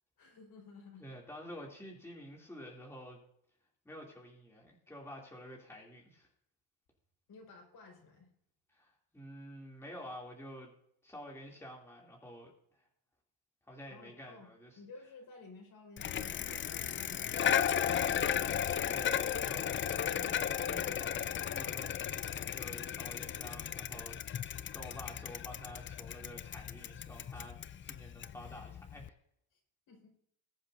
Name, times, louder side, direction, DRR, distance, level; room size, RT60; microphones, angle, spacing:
voice 1, 0.2-1.0 7.3-8.3 13.9-14.5 14.8-17.8 29.5-29.6 29.9-30.1, left 3 dB, 55° left, 1 dB, 4.8 m, -54 dB
voice 2, 1.0-3.2 3.8-6.3 8.7-10.7 11.0-12.8 13.7-14.8 18.9-20.3 20.6-24.5 24.7-29.1, equal, 5° left, -2 dB, 2.8 m, -50 dB
Bicycle, 16.0-29.1, left 9 dB, 30° left, 0.4 m, -35 dB
21.0 x 7.8 x 2.7 m, 0.72 s
cardioid pair, 120°, 43 cm